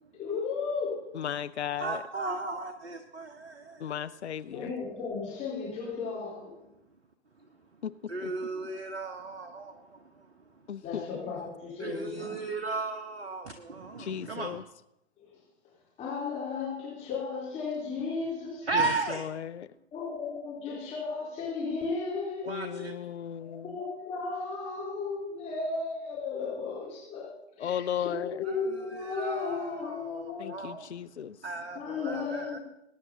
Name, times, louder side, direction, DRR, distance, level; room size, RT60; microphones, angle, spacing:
voice 1, 0.0-1.0 4.5-6.6 10.8-12.4 15.2-15.3 16.0-18.7 19.9-22.9 23.4-30.6 31.7-32.6, left 4 dB, 20° left, -7 dB, 3.4 m, -35 dB
voice 2, 1.1-2.0 3.8-4.7 7.8-8.1 10.7-11.0 14.0-14.6 18.7-19.7 22.5-23.8 27.6-28.4 30.4-31.4, left 9 dB, 75° left, 14 dB, 0.5 m, -36 dB
voice 3, 1.8-4.0 8.1-10.3 11.8-14.6 18.7-19.3 22.4-22.9 28.5-30.9 31.4-32.6, right 3 dB, 75° right, 7 dB, 1.0 m, -35 dB
21.5 x 9.6 x 2.8 m, 0.88 s
figure-of-eight pair, 110°, 34 cm